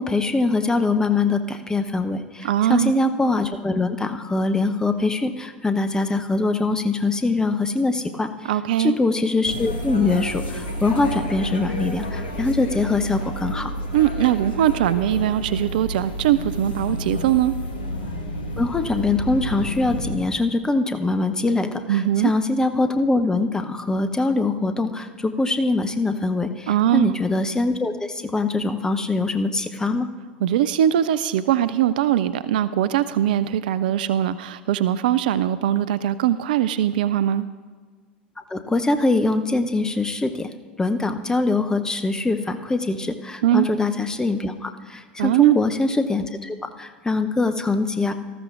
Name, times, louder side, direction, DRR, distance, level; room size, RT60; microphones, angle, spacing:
voice 1, 0.0-8.5 8.8-13.7 18.6-30.1 38.5-40.5 40.8-48.1, left 3 dB, 10° left, 8 dB, 0.8 m, -23 dB
voice 2, 2.4-2.9 8.4-8.9 13.9-17.5 21.9-22.3 26.7-27.1 30.4-37.5 43.4-43.7 45.2-45.6, right 11 dB, 60° right, 15 dB, 0.4 m, -21 dB
sound 1, 9.4-20.2, equal, 70° left, 1.6 m, -30 dB
18.5 x 13.5 x 2.5 m, 1.5 s
figure-of-eight pair, 80°, 5 cm